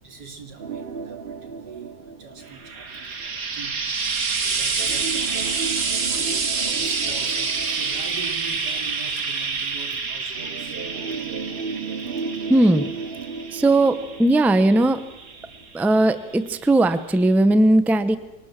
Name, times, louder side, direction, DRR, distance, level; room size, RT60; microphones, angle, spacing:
voice 1, 0.0-3.8 4.1-10.8 12.2-12.3, right 5 dB, 90° right, 5 dB, 3.4 m, -43 dB
sound 1, 0.6-3.3 4.7-9.1 10.3-15.3 15.6-15.7 16.3-16.4, right 5 dB, 45° right, 0.9 m, -35 dB
Frying (food), 2.5-15.9 16.9-17.0, right 5 dB, 60° right, 2.2 m, -28 dB
voice 2, 12.5-12.9 13.5-15.0 15.7-18.2, right 1 dB, ahead, 12 dB, 0.7 m, -18 dB
23.0 x 19.0 x 7.5 m, 1.0 s
omnidirectional pair, 1.7 m